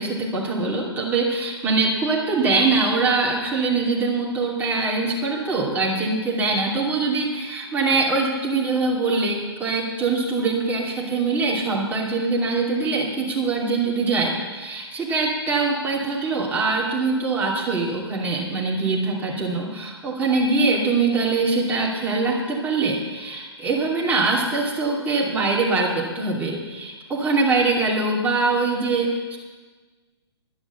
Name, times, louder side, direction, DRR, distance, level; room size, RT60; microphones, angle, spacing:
voice 1, 0.0-29.4, right 3 dB, 10° right, -4 dB, 2.9 m, -23 dB
11.5 x 10.5 x 7.1 m, 1.3 s
figure-of-eight pair, 120°, 14 cm